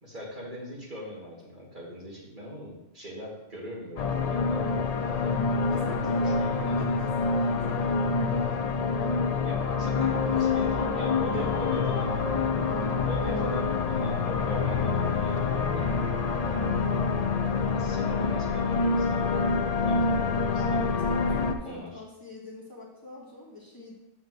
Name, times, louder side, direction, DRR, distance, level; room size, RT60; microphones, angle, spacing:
voice 1, 0.0-5.4 6.2-6.8 9.0-9.1 9.4-12.2 13.0-15.9 17.7-20.9 21.7-22.0, equal, 45° right, -4 dB, 1.9 m, -40 dB
sound 1, 4.0-21.5, left 4 dB, 60° left, 0.4 m, -26 dB
voice 2, 5.7-7.8 10.3-10.7 11.3-11.9 13.2-13.7 16.4-16.7 21.0-23.9, left 2 dB, 20° left, -6 dB, 1.6 m, -42 dB
7.8 x 7.3 x 2.5 m, 0.92 s
omnidirectional pair, 1.2 m